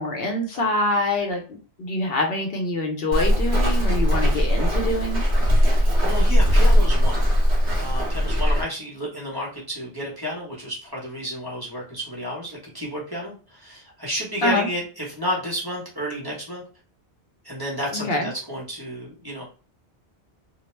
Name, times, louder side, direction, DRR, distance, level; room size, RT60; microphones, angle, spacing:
voice 1, 0.0-1.4 1.8-5.2 14.4-14.7 17.9-18.3, left 1 dB, 65° left, 2 dB, 0.8 m, -25 dB
Walk footsteps, 3.1-8.6, equal, 45° right, 1.0 m, -19 dB
voice 2, 5.8-7.3 7.8-16.6 17.4-19.5, equal, 25° right, -4 dB, 0.8 m, -31 dB
2.3 x 2.1 x 3.1 m, 0.37 s
omnidirectional pair, 1.1 m